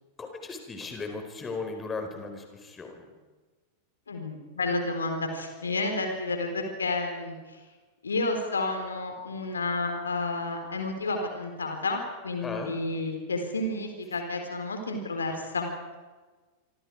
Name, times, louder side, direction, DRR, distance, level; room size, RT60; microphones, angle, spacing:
voice 1, 0.2-3.1 12.4-12.7, left 4 dB, 20° left, 5 dB, 4.7 m, -37 dB
voice 2, 4.1-7.4 8.0-15.7, left 2 dB, 75° left, 5 dB, 4.2 m, -31 dB
27.5 x 26.0 x 4.9 m, 1.3 s
figure-of-eight pair, 90°, 0 cm